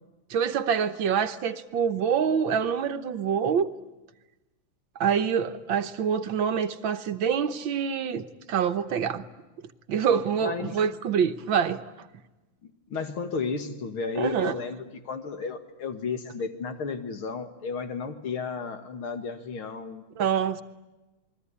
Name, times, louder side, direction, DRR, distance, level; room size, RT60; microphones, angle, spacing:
voice 1, 0.3-3.7 5.0-9.3 9.9-11.8 14.2-14.6 20.2-20.6, right 7 dB, 70° right, 10 dB, 1.8 m, -26 dB
voice 2, 10.4-10.7 12.9-20.0, left 5 dB, 85° left, 8 dB, 2.9 m, -33 dB
28.0 x 21.5 x 9.9 m, 1.1 s
omnidirectional pair, 2.3 m